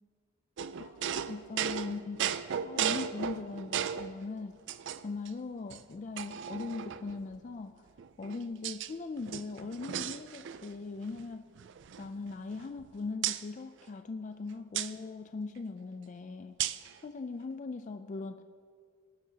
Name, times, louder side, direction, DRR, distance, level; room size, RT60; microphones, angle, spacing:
sound 1, 0.6-4.1 4.7-5.3 5.7-5.8 6.2-7.2 8.0-8.9 9.2-10.8 11.0-11.2 11.6-12.8 13.2-13.4 14.7-14.9 16.6-16.9, right 9 dB, 55° right, 0.4 m, -35 dB
voice 1, 0.8-2.3 2.6-4.6 5.0-7.8 8.2-11.5 12.0-16.6 17.0-18.4, left 3 dB, 35° left, 8 dB, 0.3 m, -40 dB
19.5 x 11.0 x 2.8 m, 2.2 s
head